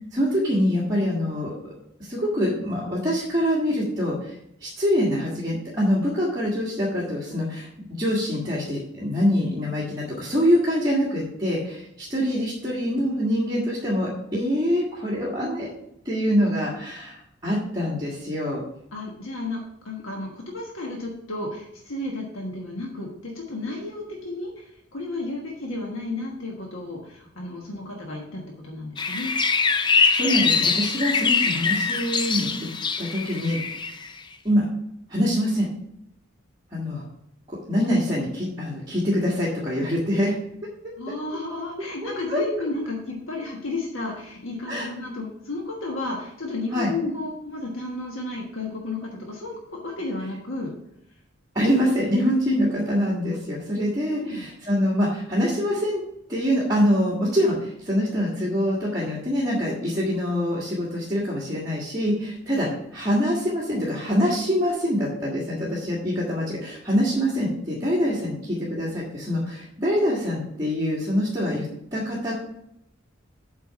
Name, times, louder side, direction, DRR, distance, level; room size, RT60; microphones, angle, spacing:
voice 1, 0.1-1.5 2.1-4.3 4.6-7.7 8.0-15.7 16.1-18.6 29.9-32.5 33.0-33.6 34.5-34.6 35.1-35.7 36.7-37.0 37.5-40.3 42.3-42.4 44.7-44.9 46.7-46.9 51.6-56.0 56.3-72.3, equal, 20° right, -8 dB, 1.7 m, -24 dB
voice 2, 18.9-29.3 41.0-50.7 54.1-54.5, left 2 dB, 80° left, -1 dB, 1.3 m, -32 dB
sound 1, 29.0-34.2, left 5 dB, 25° left, 0.4 m, -23 dB
8.2 x 4.7 x 5.9 m, 0.78 s
head